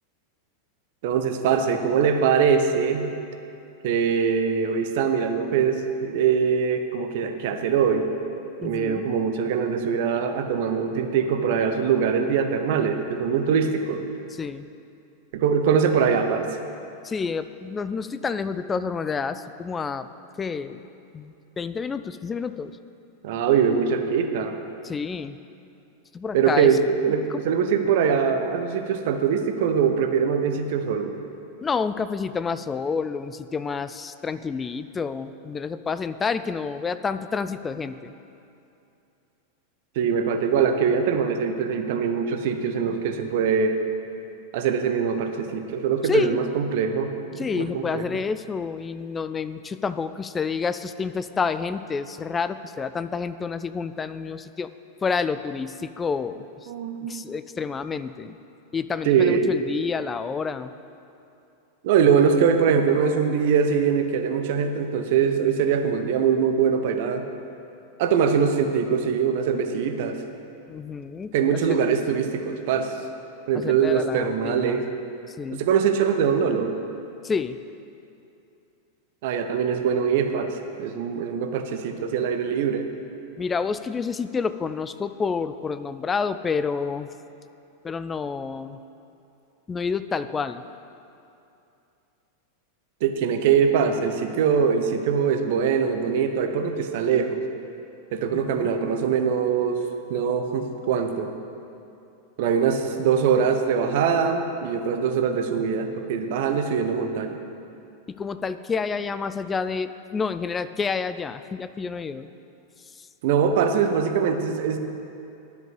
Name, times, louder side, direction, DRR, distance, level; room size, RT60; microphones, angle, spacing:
voice 1, 1.0-3.1 3.8-8.1 8.6-14.0 15.3-16.5 23.2-24.6 26.3-31.2 40.0-43.7 44.5-48.0 56.7-57.2 59.0-59.5 61.8-67.2 68.0-70.2 71.3-73.0 73.5-74.9 75.5-76.7 79.2-80.5 80.8-82.9 93.0-97.4 98.1-99.8 100.1-101.3 102.4-107.4 113.2-114.8, right 6 dB, 50° right, 6 dB, 0.8 m, -22 dB
voice 2, 8.6-9.0 14.4-14.7 17.0-20.1 20.4-20.9 21.1-22.8 24.8-25.4 26.1-26.8 27.3-27.6 31.6-38.1 46.0-46.4 47.4-54.7 55.0-56.7 57.0-58.4 58.7-60.7 70.7-71.8 73.5-74.8 75.3-75.6 77.2-77.6 83.4-87.1 87.8-88.8 89.7-90.6 98.3-98.7 108.1-112.3 112.9-113.1, left 5 dB, 20° left, 12 dB, 0.4 m, -29 dB
10.5 x 5.3 x 8.1 m, 2.7 s
figure-of-eight pair, 90°, 0 cm